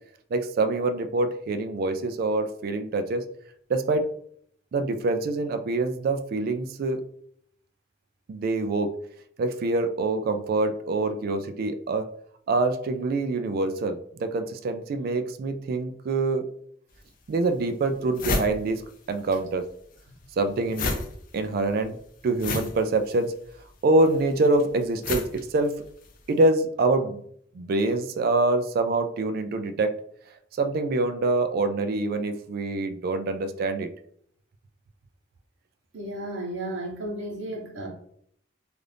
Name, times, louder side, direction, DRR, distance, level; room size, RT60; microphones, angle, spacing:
voice 1, 0.3-3.2 3.7-4.1 4.7-7.0 8.3-8.9 9.4-12.1 12.5-16.4 17.3-18.8 19.1-19.7 20.4-21.0 21.3-22.0 22.2-23.3 23.8-25.8 26.3-27.2 27.5-29.9 30.6-33.9, right 2 dB, 55° right, 9 dB, 0.3 m, -25 dB
sound 1, 16.9-17.0 17.6-17.7 17.9-19.4 19.7-26.2, left 2 dB, 50° left, 0.5 m, -32 dB
voice 2, 35.9-37.9, right 1 dB, 70° right, -2 dB, 0.9 m, -33 dB
2.5 x 2.5 x 3.3 m, 0.66 s
head